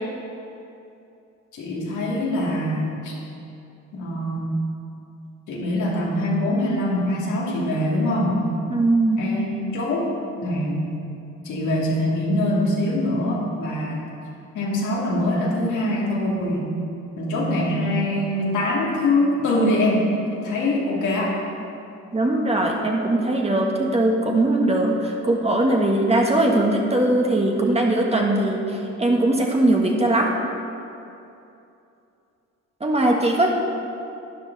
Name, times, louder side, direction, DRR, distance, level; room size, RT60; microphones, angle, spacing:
voice 1, 1.5-3.2 3.9-4.5 5.5-8.4 9.2-10.0 10.4-11.0 11.4-14.0 14.5-16.7 17.2-21.4, left 1 dB, 75° left, -5 dB, 2.8 m, -23 dB
voice 2, 8.7-9.2 22.1-30.3 32.8-33.5, right 1 dB, 20° right, 0 dB, 1.6 m, -20 dB
12.5 x 9.8 x 4.1 m, 2.7 s
cardioid pair, 90°, 30 cm